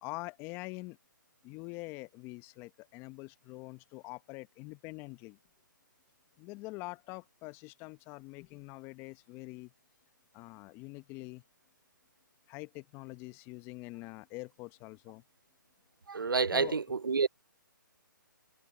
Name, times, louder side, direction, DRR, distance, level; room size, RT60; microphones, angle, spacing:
voice 1, 0.0-1.0 1.4-5.4 6.4-9.7 10.3-11.4 12.5-15.2 16.5-16.8, left 23 dB, 20° left, 1.0 m, -45 dB
voice 2, 16.1-17.3, right 5 dB, 80° right, 1.1 m, -29 dB
hypercardioid pair, 145°, 11 cm